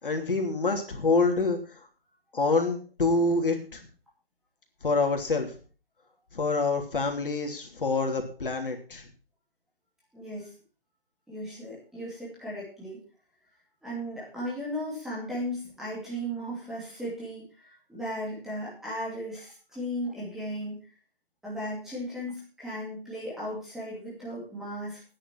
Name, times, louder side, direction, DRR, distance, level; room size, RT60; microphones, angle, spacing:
voice 1, 0.0-1.6 2.3-3.8 4.8-5.5 6.3-9.0, left 3 dB, 60° left, 3 dB, 3.2 m, -26 dB
voice 2, 10.1-10.5 11.3-13.0 13.8-20.9 21.4-25.0, equal, ahead, -8 dB, 2.5 m, -36 dB
10.5 x 10.0 x 6.0 m, 0.39 s
hypercardioid pair, 170°, 30 cm